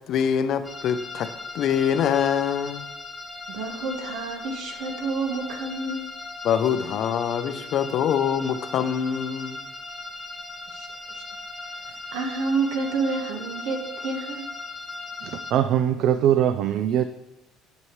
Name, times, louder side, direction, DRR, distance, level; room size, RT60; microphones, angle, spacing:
voice 1, 0.1-2.9 6.4-9.7, left 8 dB, 45° left, 11 dB, 0.5 m, -24 dB
sound 1, 0.6-15.5, left 3 dB, 10° left, 0.8 m, -38 dB
voice 2, 3.5-6.1 10.7-11.2 11.9-14.5, right 4 dB, 80° right, 5 dB, 1.2 m, -29 dB
voice 3, 15.2-17.0, right 10 dB, 55° right, 11 dB, 0.3 m, -22 dB
9.4 x 7.0 x 3.1 m, 0.95 s
cardioid pair, 170°, 0 cm